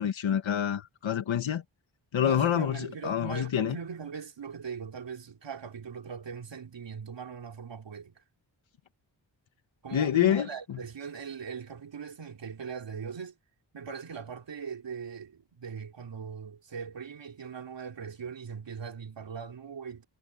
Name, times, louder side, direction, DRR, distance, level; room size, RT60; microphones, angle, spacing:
voice 1, 0.0-1.6 2.1-3.8 9.9-10.5, left 9 dB, 85° left, 1.6 m, -27 dB
voice 2, 2.2-8.2 9.8-13.4 13.7-20.0, right 6 dB, 70° right, 3.8 m, -40 dB
wide cardioid pair, 95°, 45 cm